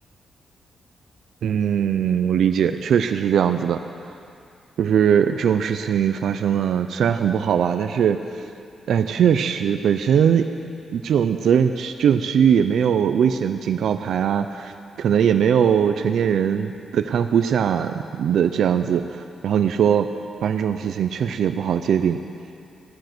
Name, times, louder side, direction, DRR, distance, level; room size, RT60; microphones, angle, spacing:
voice 1, 1.4-3.8 4.8-8.2 8.9-10.5 10.9-14.7 15.0-20.1 20.4-22.2, right 8 dB, 75° right, 8 dB, 0.5 m, -20 dB
15.5 x 13.0 x 6.1 m, 2.5 s
wide cardioid pair, 135°, 0 cm